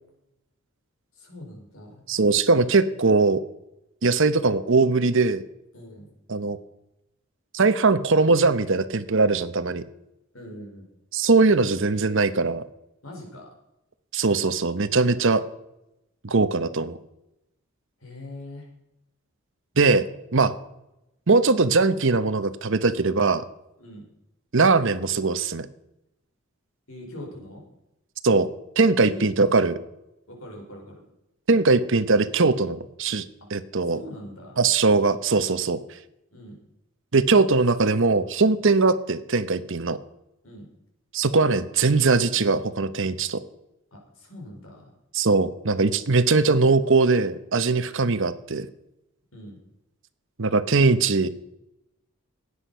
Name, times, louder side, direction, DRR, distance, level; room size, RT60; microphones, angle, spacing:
voice 1, 1.1-2.0 5.7-6.1 10.3-10.9 13.0-13.5 18.0-18.7 23.8-24.1 26.9-27.6 29.0-29.7 30.3-31.0 33.8-34.6 36.3-36.6 40.4-40.7 43.9-44.9 49.3-49.6, left 1 dB, 65° left, 0 dB, 4.9 m, -42 dB
voice 2, 2.1-3.4 4.0-5.4 6.3-6.6 7.5-9.8 11.1-12.6 14.1-15.4 16.2-17.0 19.8-20.1 20.3-20.5 21.3-23.4 24.5-25.7 28.2-28.5 28.8-29.8 31.5-33.2 33.5-34.0 34.6-35.8 37.1-40.0 41.1-43.4 45.1-48.7 50.4-51.3, right 3 dB, 60° right, 13 dB, 0.9 m, -20 dB
16.5 x 9.8 x 5.6 m, 0.88 s
head